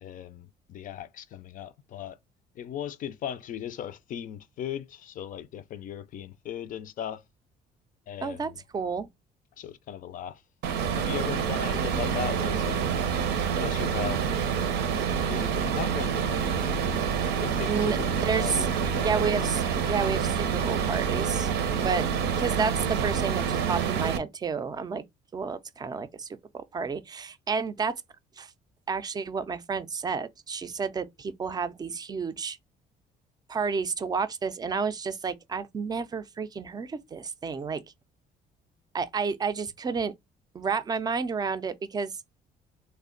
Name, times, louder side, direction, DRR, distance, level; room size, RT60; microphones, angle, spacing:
voice 1, 0.0-2.2 2.6-7.2 8.1-8.6 9.6-10.4 10.8-12.8 13.5-14.4 15.3-17.0 17.4-19.5, left 10 dB, 50° left, 0.4 m, -38 dB
voice 2, 8.2-9.1 17.7-18.7 19.0-21.5 21.8-22.1 22.4-25.0 25.3-26.3 26.5-27.9 28.4-28.5 28.9-32.6 33.5-37.8 38.9-40.1 40.5-42.1, right 5 dB, 25° right, 0.4 m, -30 dB
sound 1, 10.6-24.2, right 7 dB, 80° right, 0.7 m, -27 dB
3.3 x 2.1 x 3.7 m
cardioid pair, 110°, 17 cm